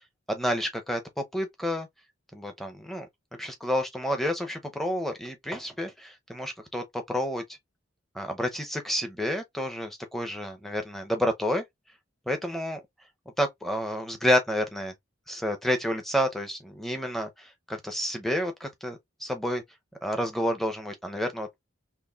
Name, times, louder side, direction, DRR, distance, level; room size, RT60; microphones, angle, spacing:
voice 1, 0.3-1.9 2.3-3.1 3.4-7.4 8.1-11.6 12.3-12.8 13.4-14.9 15.3-19.6 20.0-21.6, equal, ahead, 0.6 m, -29 dB
4.5 x 3.0 x 2.4 m
head